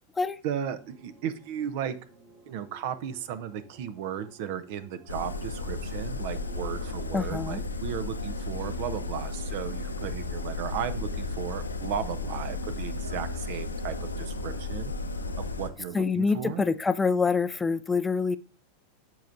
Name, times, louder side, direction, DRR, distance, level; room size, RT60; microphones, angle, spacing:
voice 1, 0.4-2.0 2.5-14.9 15.2-16.6, right 9 dB, 55° right, 14 dB, 0.7 m, -35 dB
sound 1, 0.8-16.8, right 2 dB, 35° right, 4.4 m, -56 dB
sound 2, 5.1-15.7, left 3 dB, 85° left, 0.7 m, -34 dB
voice 2, 7.1-7.6 15.9-18.4, left 4 dB, 15° left, 12 dB, 0.4 m, -26 dB
13.5 x 4.7 x 2.6 m, 0.36 s
figure-of-eight pair, 90°, 0 cm